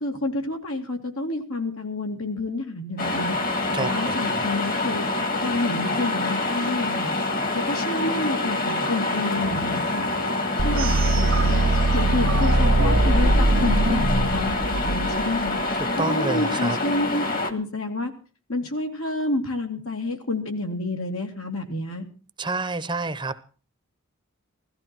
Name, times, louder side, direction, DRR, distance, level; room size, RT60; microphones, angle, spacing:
voice 1, 0.0-3.4 3.8-5.0 5.4-7.1 7.5-10.1 10.6-11.6 11.9-15.6 16.0-18.1 18.5-22.0, left 2 dB, 80° left, 3 dB, 2.7 m, -29 dB
sound 1, 3.0-17.5, left 2 dB, 40° left, 1.7 m, -26 dB
voice 2, 3.7-4.4 15.7-16.8 22.4-23.4, right 3 dB, 20° right, 12 dB, 0.8 m, -29 dB
sound 2, 10.6-15.5, right 2 dB, 75° right, 1.3 m, -21 dB
16.5 x 14.5 x 4.5 m, 0.38 s
head